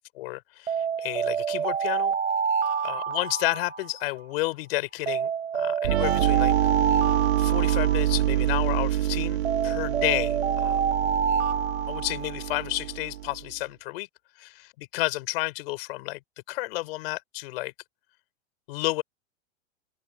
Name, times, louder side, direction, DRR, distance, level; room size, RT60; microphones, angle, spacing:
voice 1, 0.0-2.2 2.8-6.5 7.4-10.8 11.9-14.1 14.4-16.2 16.5-17.7 18.7-19.0, left 20 dB, 55° left, 5.6 m, -31 dB
Alarm, 0.7-4.4 5.1-8.8 9.4-12.7, right 6 dB, 80° right, 5.5 m, -28 dB
sound 1, 5.8-13.4, right 13 dB, 65° right, 4.4 m, -26 dB
open air
hypercardioid pair, 105°, 35 cm